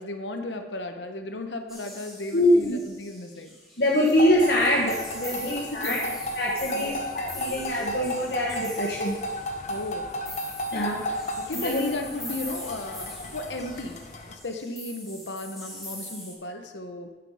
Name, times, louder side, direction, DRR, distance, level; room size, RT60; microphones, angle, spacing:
voice 1, 0.0-3.5 5.4-6.2 6.7-7.0 9.7-10.1 11.4-17.1, left 2 dB, 80° left, 5 dB, 1.1 m, -35 dB
sound 1, 1.7-16.3, left 1 dB, ahead, 3.1 m, -42 dB
voice 2, 2.3-2.7 3.8-6.0 6.4-9.2 10.7-11.0 11.5-11.8, left 1 dB, 65° left, -4 dB, 1.4 m, -24 dB
sound 2, 4.2-14.3, left 1 dB, 40° left, 1.0 m, -34 dB
9.4 x 7.5 x 4.9 m, 1.2 s
head